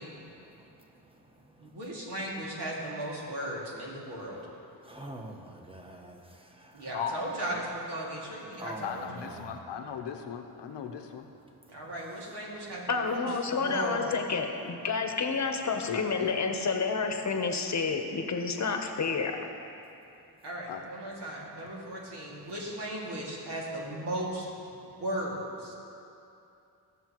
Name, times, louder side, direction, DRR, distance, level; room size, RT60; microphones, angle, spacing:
voice 1, 0.2-1.8 4.8-6.9 8.6-9.6, right 1 dB, 15° right, 2 dB, 1.2 m, -46 dB
voice 2, 1.6-4.4 6.7-9.3 11.7-14.0 20.4-24.5 25.0-25.7, right 1 dB, 70° right, -4 dB, 2.3 m, -37 dB
voice 3, 6.9-7.2 7.5-7.6 8.8-11.3 15.9-16.3 20.7-20.9, left 8 dB, 80° left, 4 dB, 0.9 m, -37 dB
voice 4, 12.9-19.4, left 4 dB, 40° left, 4 dB, 1.0 m, -29 dB
16.5 x 6.7 x 3.0 m, 2.7 s
cardioid pair, 75°, 41 cm